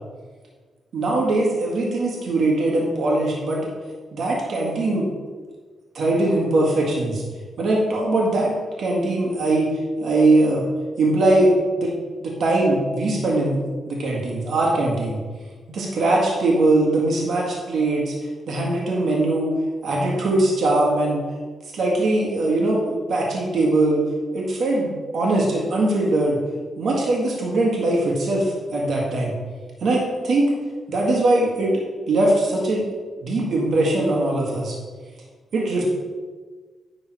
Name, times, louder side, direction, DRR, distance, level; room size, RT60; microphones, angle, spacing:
voice 1, 0.9-3.7 4.1-5.1 5.9-7.2 7.6-9.7 10.0-10.6 11.0-11.5 11.8-11.9 12.2-13.6 13.9-15.2 15.7-18.1 18.5-19.5 19.8-21.2 21.7-24.0 24.3-26.4 26.8-29.3 29.8-30.5 30.9-32.8 33.2-34.8 35.5-35.8, right 2 dB, 65° right, -3 dB, 1.8 m, -21 dB
10.0 x 3.9 x 4.7 m, 1.4 s
cardioid pair, 110°, 0 cm